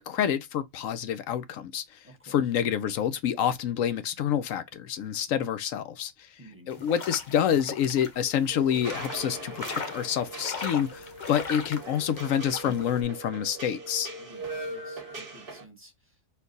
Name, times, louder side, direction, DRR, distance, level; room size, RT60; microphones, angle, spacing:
voice 1, 0.0-1.8 2.2-6.1 6.7-14.1, left 9 dB, 75° left, 0.9 m, -27 dB
voice 2, 2.0-2.4 6.4-6.8 14.2-16.2, right 1 dB, 10° right, 1.2 m, -52 dB
sound 1, 6.7-13.0, left 4 dB, 40° left, 0.9 m, -40 dB
sound 2, 8.5-15.6, right 2 dB, 40° right, 1.5 m, -40 dB
4.4 x 2.3 x 3.9 m
omnidirectional pair, 1.4 m